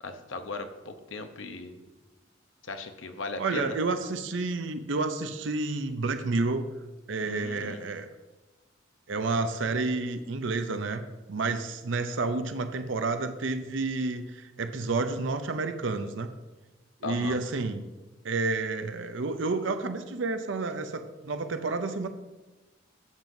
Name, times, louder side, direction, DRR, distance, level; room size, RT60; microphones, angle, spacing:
voice 1, 0.0-1.8 2.6-3.8 7.2-7.8 17.0-17.4, left 3 dB, 85° left, 7 dB, 0.8 m, -38 dB
voice 2, 3.4-6.6 7.1-8.1 9.1-11.0 11.3-16.3 17.0-17.8 18.2-22.1, right 3 dB, 75° right, 9 dB, 0.6 m, -30 dB
11.5 x 7.6 x 2.7 m, 1.1 s
head